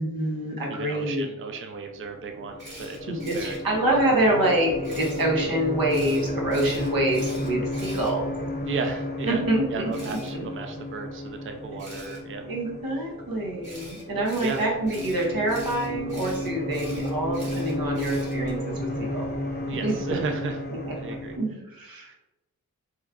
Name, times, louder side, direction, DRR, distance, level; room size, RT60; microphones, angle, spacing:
voice 1, 0.0-1.3 3.1-8.3 9.3-10.4 12.4-19.3 19.8-20.2 20.8-22.1, right 1 dB, 90° right, -2 dB, 0.9 m, -26 dB
voice 2, 0.7-3.8 8.6-9.4 9.7-12.4 14.4-14.7 19.7-20.6 20.9-21.4 22.0-22.2, right 4 dB, 40° right, 5 dB, 0.4 m, -34 dB
sound 1, 1.9-21.4, left 1 dB, 30° left, 0.7 m, -33 dB
Camera, 2.6-3.6 4.8-5.2 5.9-8.7 9.9-10.3 11.8-12.2 13.6-18.6, right 1 dB, 60° right, 1.5 m, -44 dB
3.0 x 2.3 x 3.5 m, 0.98 s
wide cardioid pair, 50°, 34 cm